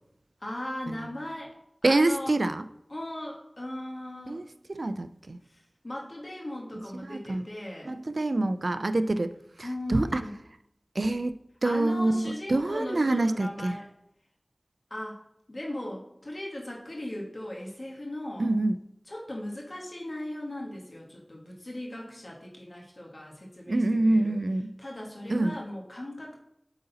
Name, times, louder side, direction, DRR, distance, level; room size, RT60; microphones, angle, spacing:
voice 1, 0.4-1.5 1.8-2.3 2.9-4.4 5.4-7.9 9.6-10.3 11.6-13.9 14.9-15.2 15.5-18.5 19.1-24.4 24.8-26.4, left 1 dB, 65° left, -1 dB, 1.4 m, -38 dB
voice 2, 1.8-2.6 4.3-4.4 4.7-5.4 7.0-7.4 7.9-9.3 9.6-10.2 11.0-12.2 12.5-13.8 18.4-18.8 23.7-24.7 25.3-25.6, right 2 dB, 85° right, 11 dB, 0.3 m, -26 dB
7.9 x 3.9 x 4.0 m, 0.77 s
wide cardioid pair, 50°, 0 cm